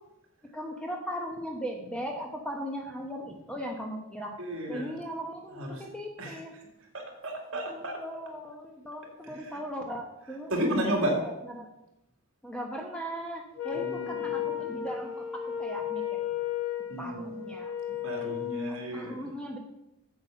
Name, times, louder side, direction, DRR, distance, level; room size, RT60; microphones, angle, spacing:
voice 1, 0.5-4.3 4.7-6.6 7.7-11.7 12.4-16.2 17.0-17.7 18.7-19.6, equal, 5° left, 1 dB, 1.0 m, -38 dB
voice 2, 4.4-5.0 5.5-5.8 6.2-6.4 6.9-8.0 9.2-9.6 10.3-11.2 13.7-14.7 16.9-17.3 18.0-19.2, right 1 dB, 60° right, 0 dB, 2.6 m, -33 dB
Wind instrument woodwind instrument, 13.6-18.8, left 10 dB, 75° left, 1.5 m, -34 dB
8.2 x 7.7 x 5.8 m, 0.90 s
head